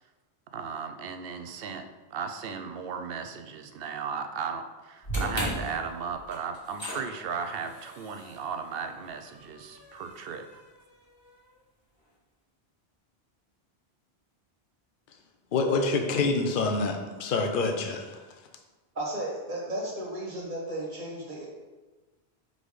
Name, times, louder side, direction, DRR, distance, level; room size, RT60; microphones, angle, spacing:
voice 1, 0.5-1.8 2.1-10.4, right 6 dB, 65° right, 7 dB, 0.7 m, -36 dB
sound 1, 5.0-11.3, right 1 dB, 25° left, 1.3 m, -38 dB
voice 2, 15.5-18.2, left 3 dB, 55° left, 3 dB, 0.8 m, -27 dB
voice 3, 18.9-21.5, right 1 dB, 50° right, -4 dB, 1.6 m, -34 dB
4.9 x 3.9 x 4.9 m, 1.2 s
omnidirectional pair, 1.1 m